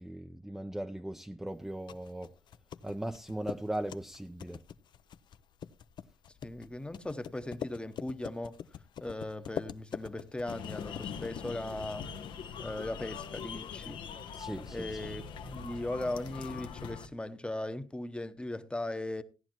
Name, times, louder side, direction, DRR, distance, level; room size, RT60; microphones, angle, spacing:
voice 1, 0.0-2.3 2.8-4.6 14.4-15.0, right 1 dB, 5° right, 0.5 m, -38 dB
sound 1, 1.6-12.6, left 9 dB, 65° left, 0.6 m, -45 dB
voice 2, 6.4-8.6 9.0-12.1 12.6-14.0 14.7-19.2, left 1 dB, 10° left, 0.9 m, -38 dB
sound 2, 10.5-17.1, left 6 dB, 80° left, 0.9 m, -42 dB
16.0 x 10.5 x 3.0 m
cardioid pair, 100°, 8 cm